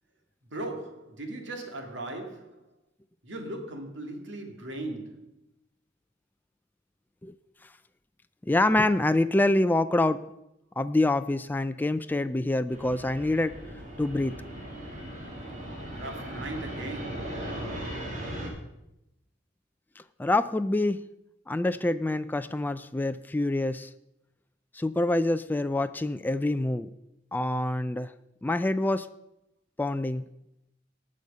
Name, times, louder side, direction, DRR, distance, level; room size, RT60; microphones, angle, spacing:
voice 1, 0.5-2.7 3.2-5.4 15.9-17.4, right 1 dB, 70° right, 2.2 m, -38 dB
voice 2, 8.4-10.2 10.8-13.5 14.0-14.4 20.2-21.0 21.5-23.9 24.7-26.9 27.3-28.1 28.4-29.1 29.8-30.2, left 2 dB, 10° left, 0.3 m, -26 dB
Fixed-wing aircraft airplane, 12.7-18.5, right 1 dB, 40° right, 2.7 m, -38 dB
18.5 x 6.4 x 5.4 m
head